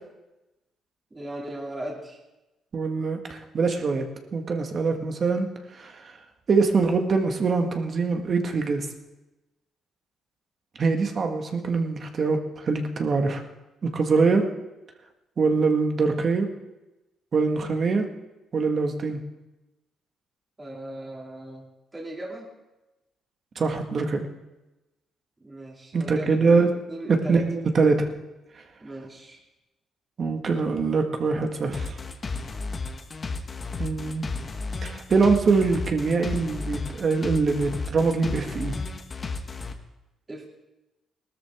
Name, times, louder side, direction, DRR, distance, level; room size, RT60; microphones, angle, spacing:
voice 1, 1.1-2.2 20.6-21.7 21.9-22.5 25.4-27.4 28.8-29.4 40.3-40.5, right 1 dB, 20° right, -2 dB, 2.6 m, -37 dB
voice 2, 2.7-6.2 6.5-8.9 10.8-13.4 13.8-14.4 15.4-16.5 17.3-18.1 18.5-19.2 23.5-24.3 25.9-26.7 27.1-28.1 30.2-32.0 33.8-34.3 34.8-38.7, right 4 dB, 45° right, 4 dB, 1.7 m, -23 dB
sound 1, 31.7-39.7, left 4 dB, 35° left, 1.3 m, -33 dB
19.0 x 13.0 x 3.6 m, 1.0 s
cardioid pair, 90°, 0 cm